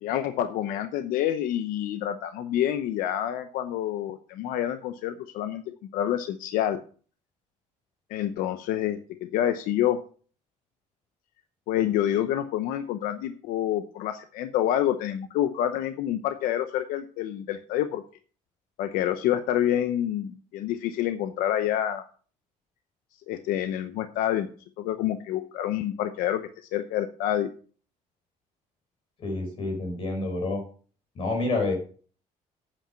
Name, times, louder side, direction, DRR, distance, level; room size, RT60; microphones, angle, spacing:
voice 1, 0.0-5.6 5.9-6.8 8.1-10.0 11.7-18.0 18.8-22.0 23.3-24.5 24.8-27.5, left 11 dB, 85° left, 9 dB, 0.8 m, -27 dB
voice 2, 29.2-30.6 31.1-31.7, left 2 dB, 40° left, 2 dB, 4.6 m, -28 dB
8.7 x 7.5 x 5.8 m, 0.42 s
cardioid pair, 170°, 14 cm